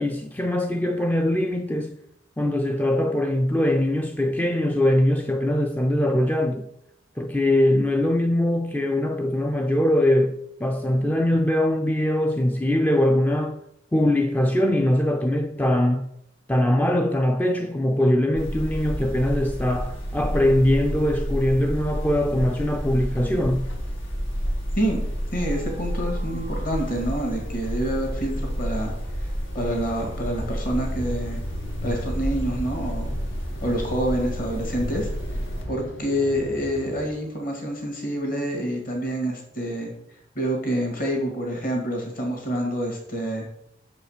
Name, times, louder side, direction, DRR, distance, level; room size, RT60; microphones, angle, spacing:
voice 1, 0.0-2.0 2.4-6.6 7.2-13.6 13.9-16.1 16.5-23.7, left 1 dB, 10° left, 0.3 m, -22 dB
sound 1, 18.3-35.6, equal, 85° left, 2.2 m, -30 dB
sound 2, 21.9-37.1, left 1 dB, 70° left, 1.3 m, -40 dB
voice 2, 25.3-28.9 29.2-31.4 31.8-33.1 33.6-35.1 35.7-39.9 40.4-43.5, equal, 45° left, 2.1 m, -27 dB
6.6 x 5.3 x 6.5 m
head